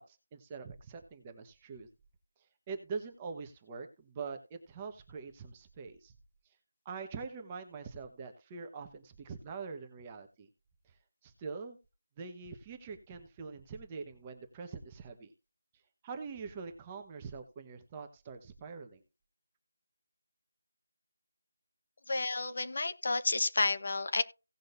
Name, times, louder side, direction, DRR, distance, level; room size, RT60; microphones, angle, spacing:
voice 1, 0.0-1.9 2.7-6.1 6.8-10.5 11.2-11.8 12.2-15.3 16.0-19.0, right 5 dB, 10° right, 5 dB, 1.1 m, -44 dB
voice 2, 22.1-24.2, left 3 dB, 45° left, 10 dB, 1.0 m, -31 dB
17.5 x 6.2 x 2.6 m, 0.29 s
figure-of-eight pair, 175°, 0 cm